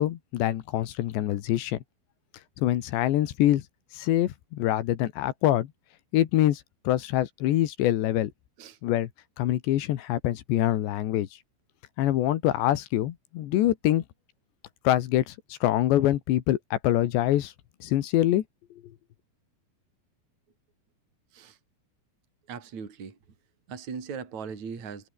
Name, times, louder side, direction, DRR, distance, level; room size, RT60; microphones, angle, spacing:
voice 1, 0.0-1.8 2.6-3.6 3.9-5.7 6.1-8.3 8.8-9.1 9.4-11.3 12.0-14.0 14.8-17.5 17.8-18.4, left 13 dB, 70° left, 3.2 m, -25 dB
voice 2, 22.5-23.2 23.7-25.1, right 6 dB, 35° right, 5.1 m, -39 dB
omnidirectional pair, 5.9 m